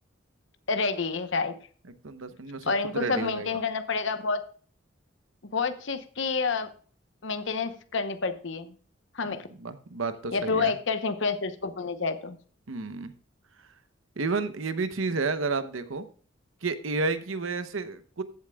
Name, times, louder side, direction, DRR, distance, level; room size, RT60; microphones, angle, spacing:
voice 1, 0.7-1.5 2.6-4.4 5.5-6.7 7.2-8.7 9.1-9.5 10.3-12.4, left 4 dB, 65° left, 9 dB, 0.9 m, -29 dB
voice 2, 2.0-3.5 9.2-10.7 12.7-13.1 14.2-16.1 16.6-18.2, right 3 dB, 85° right, 11 dB, 0.9 m, -31 dB
14.5 x 8.4 x 2.3 m, 0.43 s
head